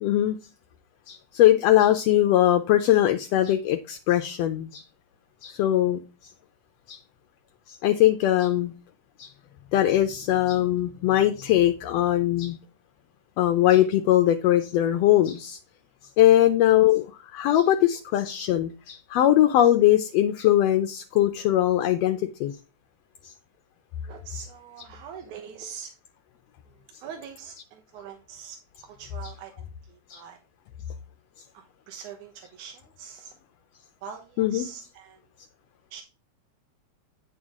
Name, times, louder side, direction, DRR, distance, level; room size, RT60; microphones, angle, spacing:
voice 1, 0.0-0.4 1.1-4.8 5.4-6.0 6.9-7.0 7.7-8.7 9.2-9.3 9.7-12.6 13.4-15.6 16.2-22.5 30.1-30.2 34.4-34.7, left 12 dB, 75° left, 5 dB, 1.6 m, -21 dB
voice 2, 24.1-25.9 27.0-28.6 28.8-30.4 31.5-33.3 34.0-35.2 35.9-36.0, right 7 dB, 85° right, 4 dB, 2.5 m, -43 dB
8.9 x 6.4 x 3.6 m, 0.30 s
omnidirectional pair, 3.4 m